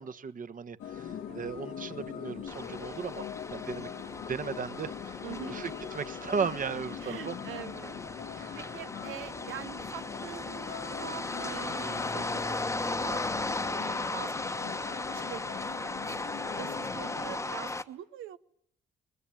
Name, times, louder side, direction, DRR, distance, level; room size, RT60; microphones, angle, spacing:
voice 1, 0.0-3.3 3.5-3.9 4.3-5.2 5.5-7.4 8.4-8.6, right 6 dB, 45° right, 10 dB, 1.3 m, -36 dB
sound 1, 0.8-17.4, left 9 dB, 85° left, 2.0 m, -42 dB
sound 2, 2.5-17.8, left 2 dB, 15° left, 1.1 m, -37 dB
voice 2, 5.2-5.8 7.0-12.4 12.7-13.2 13.7-16.2 16.6-18.4, right 11 dB, 85° right, 13 dB, 1.0 m, -45 dB
21.0 x 20.5 x 9.2 m, 0.72 s
cardioid pair, 90°, 20 cm